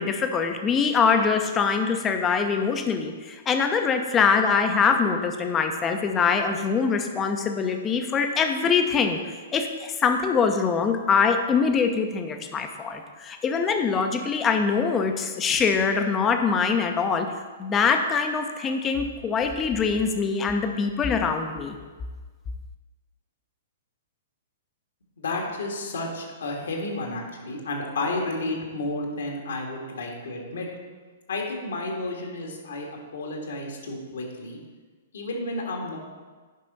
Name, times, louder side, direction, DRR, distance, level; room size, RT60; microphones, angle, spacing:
voice 1, 0.0-9.2 9.5-17.3 17.6-21.8, left 5 dB, 20° left, 6 dB, 0.8 m, -23 dB
voice 2, 25.2-30.7 31.3-34.6 35.1-36.0, left 2 dB, 65° left, 0 dB, 1.7 m, -31 dB
10.0 x 5.5 x 4.1 m, 1.4 s
figure-of-eight pair, 110°, 0 cm